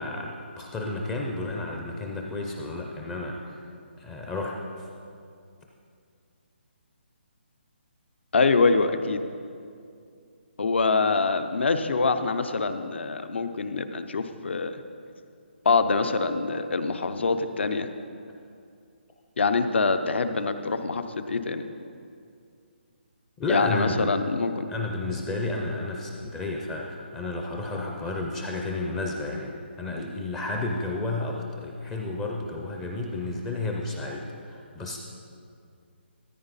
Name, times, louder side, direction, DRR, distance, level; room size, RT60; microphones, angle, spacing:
voice 1, 0.0-3.7 4.0-4.6 23.4-24.1 24.7-29.5 29.8-35.0, left 2 dB, 10° left, 0 dB, 0.4 m, -31 dB
voice 2, 8.3-9.2 10.6-14.8 15.6-17.9 19.4-21.6 23.5-24.7, left 4 dB, 70° left, 9 dB, 0.7 m, -25 dB
14.0 x 8.9 x 4.1 m, 2.4 s
hypercardioid pair, 170°, 6 cm